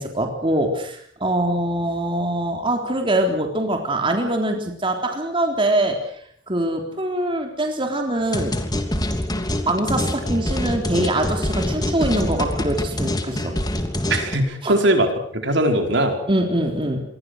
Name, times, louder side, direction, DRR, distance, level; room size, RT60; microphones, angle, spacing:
voice 1, 0.0-6.0 6.5-8.6 9.7-13.5 14.6-14.7 16.3-17.0, right 1 dB, 25° right, 3 dB, 3.6 m, -23 dB
sound 1, 8.3-14.3, left 1 dB, 20° left, 3.0 m, -25 dB
voice 2, 14.1-16.2, right 1 dB, 65° right, 4 dB, 4.7 m, -20 dB
27.5 x 23.0 x 6.6 m, 0.63 s
head